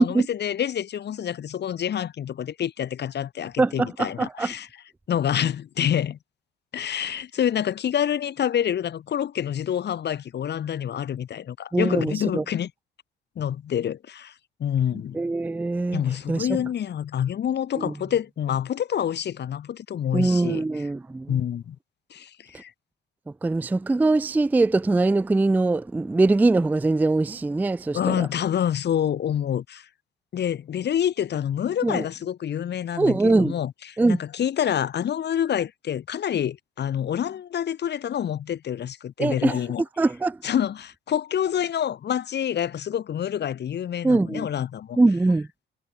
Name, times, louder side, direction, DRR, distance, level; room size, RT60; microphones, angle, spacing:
voice 1, 0.0-4.7 5.1-6.2 6.7-12.7 13.4-14.3 14.6-15.2 15.9-20.8 21.3-21.8 22.1-22.7 27.9-29.9 30.3-39.8 40.4-45.0, left 9 dB, 60° left, 1.9 m, -27 dB
voice 2, 3.6-4.5 11.7-12.4 15.1-16.0 16.3-16.5 17.8-17.9 20.1-21.4 23.4-28.3 31.8-32.0 33.0-33.6 34.0-34.2 39.2-39.6 40.0-40.4 44.0-44.5 45.0-45.5, right 2 dB, 10° right, 0.3 m, -22 dB
cardioid pair, 90°, 20 cm